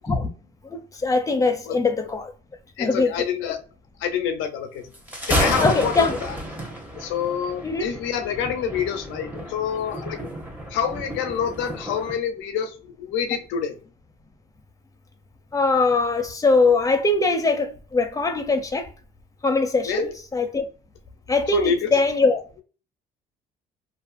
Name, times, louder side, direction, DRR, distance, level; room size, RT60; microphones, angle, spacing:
voice 1, 0.6-2.3 2.8-3.1 5.6-6.2 7.6-7.9 15.5-18.9 19.4-20.6 21.3-22.4, left 3 dB, 15° left, 0.6 m, -21 dB
voice 2, 2.8-3.6 4.0-4.8 5.2-6.3 7.0-10.2 10.7-13.7 19.8-20.1 21.5-21.9, left 8 dB, 80° left, 0.5 m, -27 dB
Thunder, 4.9-12.2, equal, 10° right, 0.8 m, -31 dB
2.5 x 2.4 x 2.4 m
supercardioid pair, 80°, 20 cm